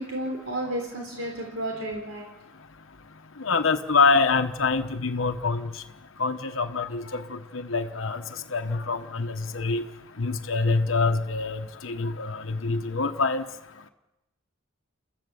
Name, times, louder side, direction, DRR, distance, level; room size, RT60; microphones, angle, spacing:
voice 1, 0.0-2.2, right 1 dB, 85° right, 1 dB, 3.9 m, -32 dB
voice 2, 3.4-5.8 6.2-8.2 8.5-9.8 10.2-13.4, left 4 dB, 75° left, 6 dB, 1.1 m, -25 dB
30.0 x 14.5 x 7.0 m, 1.0 s
head